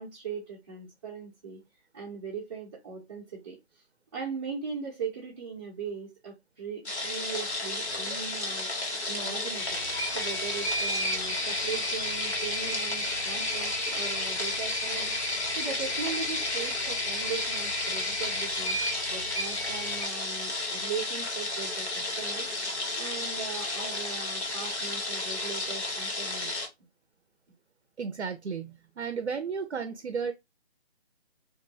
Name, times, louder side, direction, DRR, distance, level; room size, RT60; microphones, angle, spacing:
voice 1, 0.0-1.6 1.9-3.6 4.1-9.8 10.1-15.1 15.6-18.8 19.1-26.5, right 6 dB, 25° right, 0.9 m, -39 dB
sound 1, 6.9-26.7, left 2 dB, 90° left, 1.4 m, -33 dB
sound 2, 9.6-20.0, left 1 dB, 70° left, 1.3 m, -34 dB
voice 2, 28.0-30.3, right 6 dB, 90° right, 0.6 m, -33 dB
2.6 x 2.6 x 2.6 m
figure-of-eight pair, 160°, 33 cm